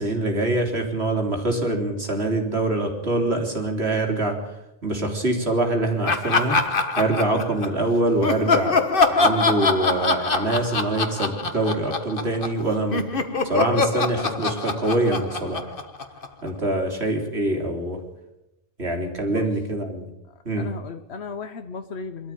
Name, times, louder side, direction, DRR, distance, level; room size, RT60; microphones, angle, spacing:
voice 1, 0.0-4.4 4.8-6.6 7.0-8.8 9.1-13.0 13.4-15.7 16.4-18.0 18.8-20.1 20.5-20.7, right 2 dB, 80° right, 3 dB, 3.8 m, -24 dB
Laughter, 6.1-7.8 8.2-12.6 12.9-16.5, left 3 dB, 55° left, 1.7 m, -23 dB
voice 2, 20.5-22.3, left 5 dB, 80° left, 8 dB, 1.3 m, -35 dB
22.5 x 13.0 x 9.2 m, 0.92 s
omnidirectional pair, 1.1 m